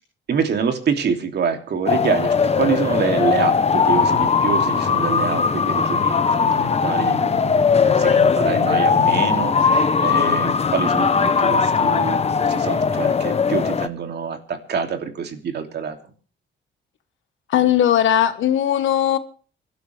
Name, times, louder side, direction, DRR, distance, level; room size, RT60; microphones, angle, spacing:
voice 1, 0.3-16.0, right 6 dB, 55° right, 2.9 m, -26 dB
sound 1, 1.9-13.9, left 5 dB, 30° left, 1.0 m, -19 dB
voice 2, 17.5-19.2, left 10 dB, 75° left, 1.5 m, -18 dB
26.0 x 12.0 x 3.5 m
cardioid pair, 90°, 20 cm